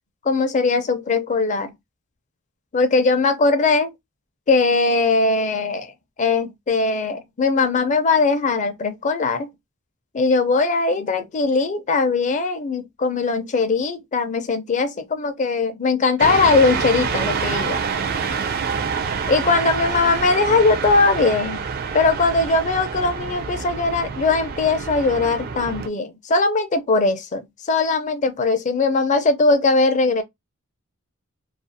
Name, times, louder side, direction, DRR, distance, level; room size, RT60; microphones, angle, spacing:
voice 1, 0.2-1.7 2.7-3.9 4.5-5.9 6.2-9.5 10.1-17.8 19.3-21.6 21.9-30.2, left 3 dB, 35° left, 0.4 m, -20 dB
sound 1, 16.2-25.9, right 5 dB, 45° right, 0.3 m, -27 dB
2.4 x 2.3 x 2.6 m
head